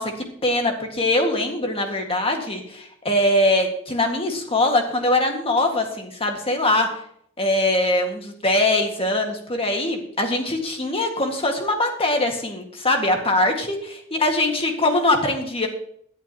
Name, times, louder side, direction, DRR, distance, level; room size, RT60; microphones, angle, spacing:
voice 1, 0.0-6.9 7.4-15.7, left 1 dB, 25° left, 3 dB, 1.9 m, -22 dB
18.0 x 11.0 x 3.0 m, 0.66 s
head